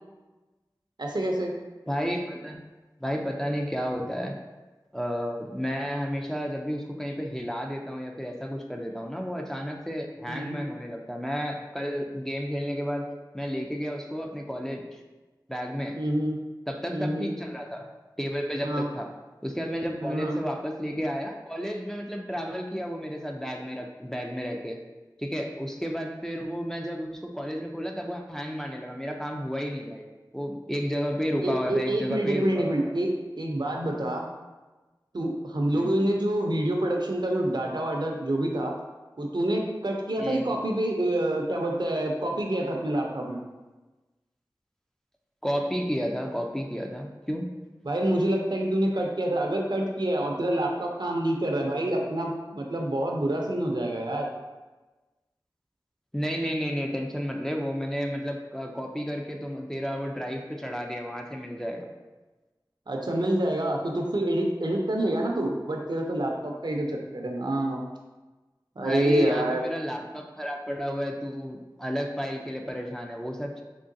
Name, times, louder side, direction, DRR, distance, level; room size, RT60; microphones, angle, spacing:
voice 1, 1.0-1.5 10.3-10.7 16.0-16.4 16.9-17.3 18.6-18.8 20.0-20.4 31.4-33.1 33.4-34.2 35.1-38.7 39.2-43.4 47.8-54.3 62.9-67.8 68.8-69.6, right 1 dB, 65° right, 0 dB, 0.5 m, -27 dB
voice 2, 1.9-2.6 3.0-4.4 4.9-15.0 15.5-16.0 16.7-17.9 18.2-19.1 19.4-24.8 25.2-32.9 35.7-35.9 40.2-40.5 45.4-47.5 56.1-61.9 68.8-73.6, equal, 5° left, 1 dB, 0.4 m, -32 dB
3.7 x 3.1 x 2.6 m, 1.2 s
wide cardioid pair, 45°, 8 cm